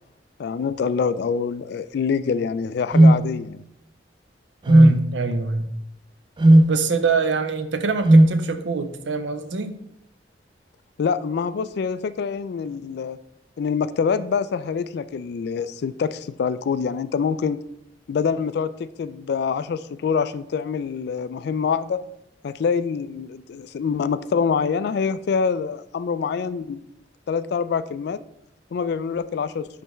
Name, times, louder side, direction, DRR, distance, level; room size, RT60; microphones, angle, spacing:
voice 1, 0.4-3.6 11.0-13.2 13.6-17.6 18.1-22.0 22.4-26.8 27.3-28.2 28.7-29.7, left 6 dB, 65° left, 14 dB, 0.3 m, -25 dB
sound 1, 2.9-3.2 4.7-5.0 6.4-6.7 8.1-8.4, right 1 dB, 25° right, 0.3 m, -12 dB
voice 2, 4.7-5.7 6.7-9.8, right 4 dB, 85° right, 9 dB, 0.6 m, -25 dB
9.9 x 3.4 x 3.1 m, 0.78 s
head